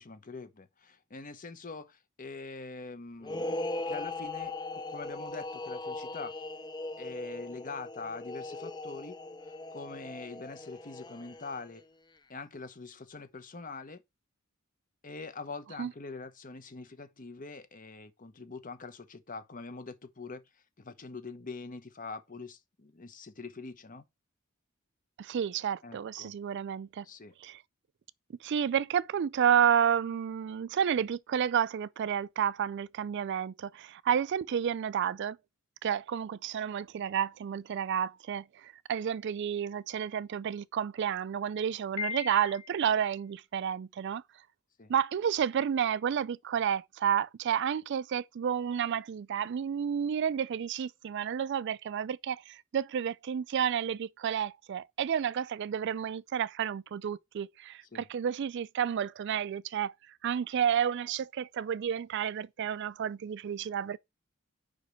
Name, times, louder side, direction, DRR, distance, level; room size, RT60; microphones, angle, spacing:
voice 1, 0.0-3.6 3.9-6.3 7.0-9.2 9.7-11.8 12.3-14.0 15.0-20.4 20.8-24.0 25.8-26.3 27.0-27.3 44.8-44.9 57.9-58.1, left 4 dB, 40° left, 0.9 m, -44 dB
sound 1, 3.2-11.8, left 2 dB, 20° left, 0.4 m, -39 dB
voice 2, 25.2-27.1 27.4-27.6 28.4-35.4 35.8-44.2 44.9-59.9 60.2-64.0, right 8 dB, 55° right, 0.3 m, -31 dB
Piano, 42.0-43.0, left 6 dB, 75° left, 0.9 m, -38 dB
5.2 x 5.1 x 6.3 m
head